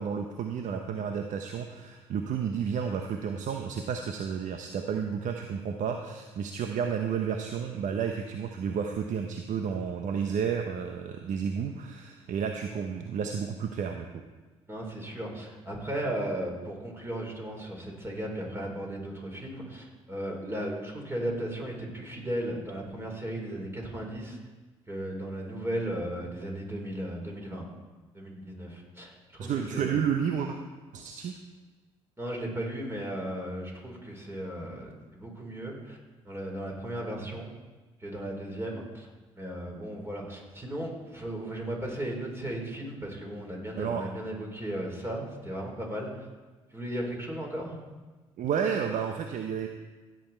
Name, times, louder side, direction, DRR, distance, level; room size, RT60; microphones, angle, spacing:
voice 1, 0.0-14.1 29.4-30.6 30.9-31.4 37.2-37.4 43.8-44.1 48.4-49.7, right 7 dB, 60° right, 5 dB, 0.9 m, -31 dB
voice 2, 14.7-24.4 24.9-27.7 28.1-29.1 29.4-30.0 32.2-36.0 36.2-37.5 38.0-39.1 39.4-46.2 46.7-47.8, right 1 dB, 15° right, 0 dB, 4.8 m, -36 dB
15.5 x 9.4 x 4.5 m, 1.3 s
hypercardioid pair, 50°, 15 cm